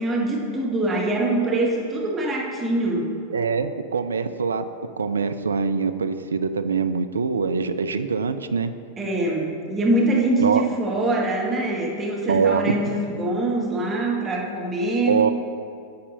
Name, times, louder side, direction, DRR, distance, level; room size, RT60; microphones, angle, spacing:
voice 1, 0.0-3.1 9.0-15.3, right 2 dB, 15° right, -2 dB, 1.2 m, -24 dB
voice 2, 3.3-4.6 5.0-8.7 10.4-10.6 12.3-12.7 15.1-15.3, right 5 dB, 70° right, 10 dB, 0.4 m, -23 dB
9.6 x 4.3 x 5.2 m, 2.4 s
figure-of-eight pair, 90°, 0 cm